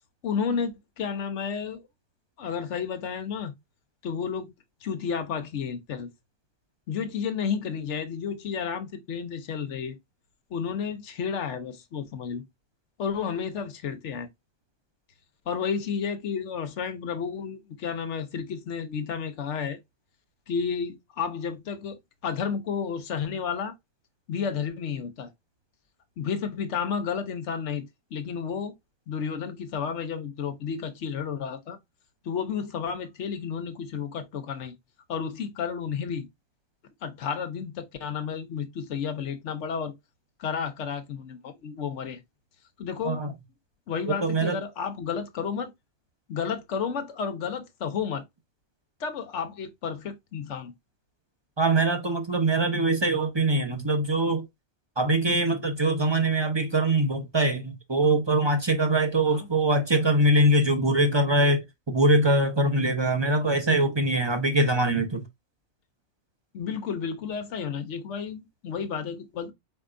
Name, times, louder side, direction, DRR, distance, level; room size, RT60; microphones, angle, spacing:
voice 1, 0.2-1.8 2.4-3.5 4.0-4.5 4.8-6.1 6.9-10.0 10.5-12.4 13.0-14.3 15.5-19.8 20.5-23.7 24.3-25.3 26.2-28.7 29.1-31.8 32.2-34.7 35.1-36.3 37.0-39.9 40.4-42.2 42.8-43.2 43.9-45.7 46.3-48.2 49.0-50.7 59.3-59.5 66.5-69.5, left 6 dB, 80° left, 1.1 m, -31 dB
voice 2, 44.2-44.6 51.6-54.4 55.0-61.6 61.9-65.2, right 1 dB, 25° right, 0.8 m, -23 dB
4.5 x 4.4 x 2.5 m
omnidirectional pair, 1.2 m